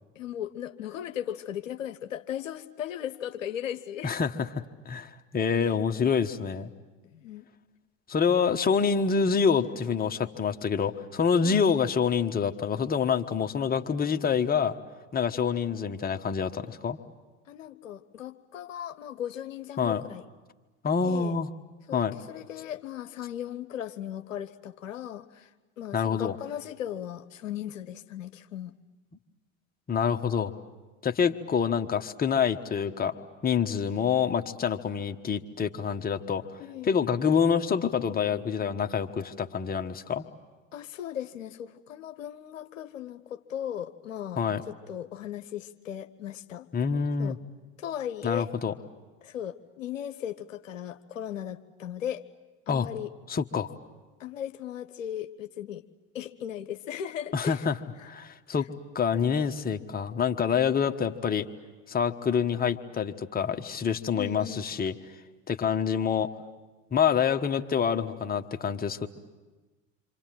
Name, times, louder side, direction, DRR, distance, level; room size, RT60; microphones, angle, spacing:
voice 1, 0.2-4.1 5.6-5.7 7.1-7.5 11.4-11.7 17.5-20.2 21.0-21.4 21.9-25.5 25.8-28.7 36.6-37.0 40.7-46.7 47.2-47.4 47.8-48.5 49.2-52.2 52.7-53.1 54.2-55.8 56.1-57.7 58.0-58.1 58.5-58.6 64.1-64.6, left 10 dB, 75° left, 9 dB, 0.9 m, -37 dB
voice 2, 4.0-6.7 8.1-14.7 15.1-17.0 19.8-20.0 20.8-21.5 21.9-22.2 25.9-26.4 29.9-30.5 31.0-33.1 33.4-36.4 36.8-40.2 44.4-44.6 46.7-47.4 48.2-48.7 52.7-52.9 53.3-53.7 57.3-57.8 58.0-58.7 58.9-61.5 61.9-64.9 65.5-66.3 66.9-69.1, left 6 dB, 25° left, 6 dB, 1.3 m, -26 dB
27.0 x 26.0 x 7.7 m, 1.2 s
figure-of-eight pair, 70°, 39 cm